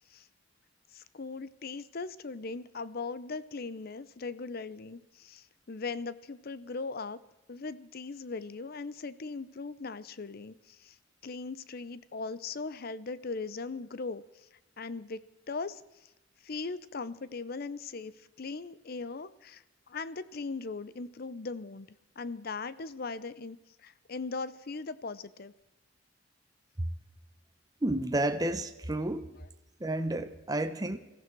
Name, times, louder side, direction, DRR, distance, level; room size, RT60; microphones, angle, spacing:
voice 1, 0.9-7.2 7.5-11.0 11.2-14.5 14.8-16.1 16.4-19.6 19.9-21.9 22.2-25.5, left 4 dB, 50° left, 16 dB, 0.6 m, -39 dB
voice 2, 27.8-29.3 29.8-31.0, right 1 dB, 20° right, 8 dB, 0.8 m, -31 dB
20.5 x 15.0 x 4.6 m, 0.97 s
head